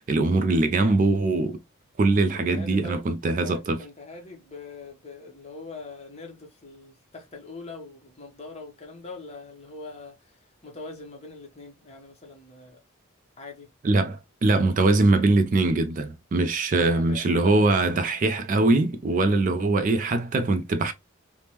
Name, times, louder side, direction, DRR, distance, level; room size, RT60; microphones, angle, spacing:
voice 1, 0.0-1.6 2.0-3.8 13.8-20.9, right 2 dB, 40° right, 0.3 m, -22 dB
voice 2, 2.3-12.8 13.4-13.7 16.7-17.9, left 3 dB, 30° left, 0.9 m, -43 dB
3.3 x 2.0 x 2.8 m
head